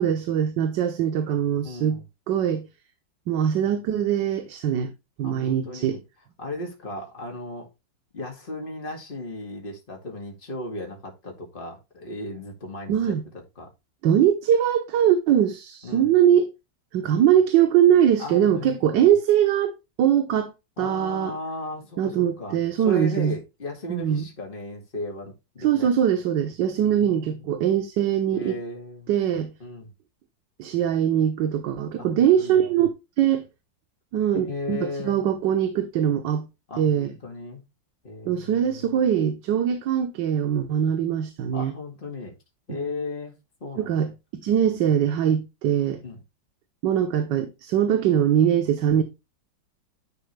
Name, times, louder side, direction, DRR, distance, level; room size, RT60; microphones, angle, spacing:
voice 1, 0.0-2.0 2.3-2.7 3.3-4.9 5.2-6.0 12.9-13.2 14.0-16.5 16.9-20.5 20.8-21.3 22.0-23.4 23.9-24.3 25.6-28.6 29.1-29.5 30.6-33.4 34.1-36.5 36.8-37.1 38.3-41.7 43.8-44.1 44.4-46.0 46.8-49.0, right 9 dB, 75° right, 1.6 m, -22 dB
voice 2, 1.6-2.1 5.2-6.0 6.4-7.7 8.1-13.1 13.6-13.7 15.8-16.1 18.2-19.1 20.8-22.6 22.8-25.9 26.8-27.7 28.3-29.1 29.6-29.9 32.0-32.6 34.3-35.2 36.7-37.6 38.0-39.1 41.5-42.4 42.7-43.3 43.6-44.0 46.0-46.2, left 2 dB, 30° left, 2.3 m, -36 dB
10.5 x 4.4 x 3.2 m
omnidirectional pair, 2.0 m